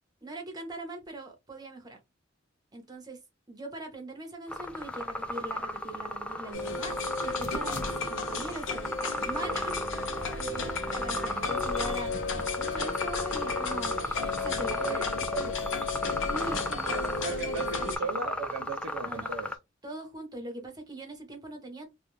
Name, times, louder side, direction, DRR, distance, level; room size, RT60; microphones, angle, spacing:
voice 1, 0.2-2.0 2.7-3.2 3.5-7.0 7.2-15.0 16.3-17.9 19.0-19.4 19.8-21.9, right 2 dB, 20° right, 0.9 m, -41 dB
sound 1, 4.5-19.6, left 1 dB, 5° left, 0.3 m, -35 dB
sound 2, 6.5-18.0, left 4 dB, 70° left, 0.6 m, -33 dB
voice 2, 14.8-16.2 16.9-19.6, right 4 dB, 65° right, 0.5 m, -38 dB
2.4 x 2.3 x 3.0 m
head